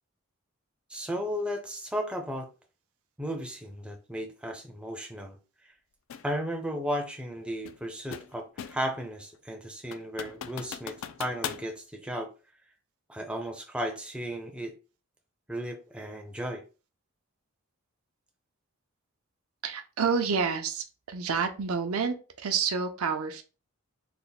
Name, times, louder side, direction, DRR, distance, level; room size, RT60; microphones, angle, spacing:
voice 1, 0.9-2.5 3.2-5.4 6.2-12.3 13.1-14.7 15.5-16.6, equal, 5° right, 0.4 m, -35 dB
sound 1, 6.1-6.3 7.6-9.0 9.3-9.4 9.9-11.7, left 8 dB, 60° left, 0.3 m, -39 dB
voice 2, 19.6-23.4, right 5 dB, 80° right, 0.6 m, -29 dB
3.4 x 2.1 x 4.0 m
head